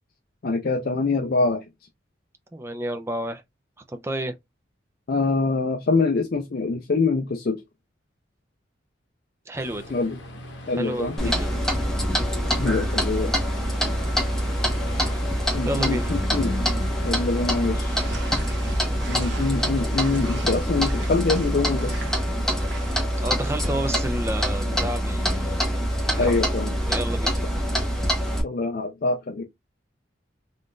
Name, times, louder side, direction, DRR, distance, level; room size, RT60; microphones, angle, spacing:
voice 1, 0.4-1.6 5.1-7.6 9.9-10.2 10.7-11.4 12.6-13.4 15.5-16.6 17.0-18.0 19.1-22.0 26.2-26.7 28.4-29.4, left 3 dB, 50° left, 0.4 m, -24 dB
voice 2, 2.5-3.4 3.9-4.4 9.5-10.0 10.8-11.5 15.6-16.1 23.2-25.6 26.0-26.4 26.9-27.4, right 1 dB, 15° right, 0.4 m, -30 dB
Aircraft, 9.6-21.1, left 1 dB, 80° left, 1.1 m, -41 dB
Clock, 11.2-28.4, equal, 5° left, 0.8 m, -25 dB
sound 1, 17.8-23.0, right 3 dB, 75° right, 0.8 m, -41 dB
3.6 x 2.5 x 2.2 m
head